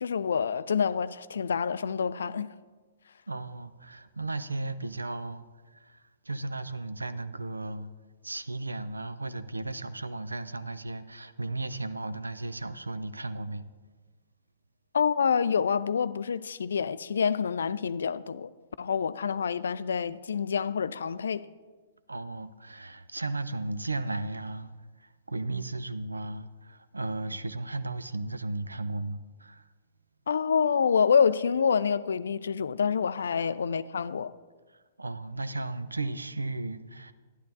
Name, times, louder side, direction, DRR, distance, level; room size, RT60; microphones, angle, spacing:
voice 1, 0.0-2.5 14.9-18.5 18.8-21.5 30.3-34.3, left 6 dB, 65° left, 0.3 m, -27 dB
voice 2, 3.3-7.9 8.2-13.6 22.1-24.7 25.0-29.7 33.4-33.6 35.0-37.1, right 2 dB, 80° right, 0.4 m, -35 dB
11.5 x 11.0 x 2.7 m
figure-of-eight pair, 115°, 0 cm